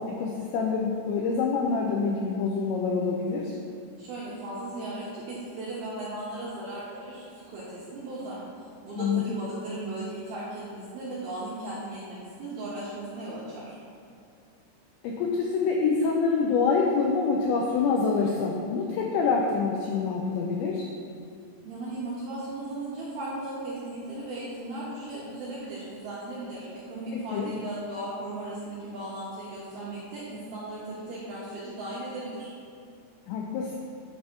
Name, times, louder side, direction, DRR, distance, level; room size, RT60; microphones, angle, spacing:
voice 1, 0.0-3.6 9.0-9.3 15.0-20.9 27.1-27.5 33.3-33.8, left 4 dB, 90° left, 0 dB, 2.5 m, -26 dB
voice 2, 4.0-8.4 8.8-13.8 21.6-32.5, right 2 dB, 75° right, -8 dB, 2.3 m, -37 dB
9.9 x 3.4 x 6.1 m, 2.4 s
omnidirectional pair, 5.8 m